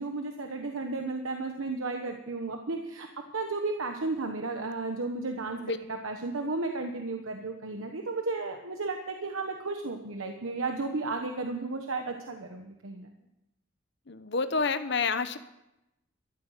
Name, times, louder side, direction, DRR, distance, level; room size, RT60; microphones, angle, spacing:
voice 1, 0.0-3.1 3.3-5.6 6.0-13.1, right 3 dB, 90° right, 4 dB, 1.2 m, -33 dB
voice 2, 14.1-15.4, left 4 dB, 60° left, 11 dB, 0.9 m, -28 dB
13.5 x 11.5 x 6.6 m, 0.90 s
head